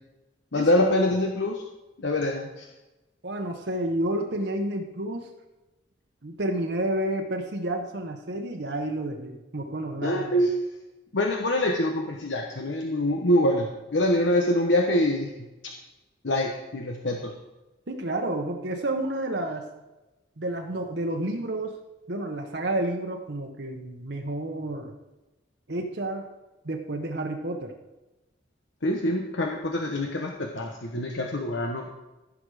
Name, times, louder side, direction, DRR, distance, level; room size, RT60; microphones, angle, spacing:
voice 1, 0.5-1.6 2.0-2.7 10.0-10.5 11.1-15.7 16.2-17.3 28.8-31.9, left 1 dB, 80° left, 2 dB, 1.1 m, -25 dB
voice 2, 3.2-5.3 6.2-10.5 17.9-19.6 20.4-21.8 22.1-25.0 25.7-26.3 26.6-27.7, right 1 dB, 65° right, 2 dB, 1.1 m, -30 dB
15.5 x 6.2 x 4.9 m, 1.0 s
head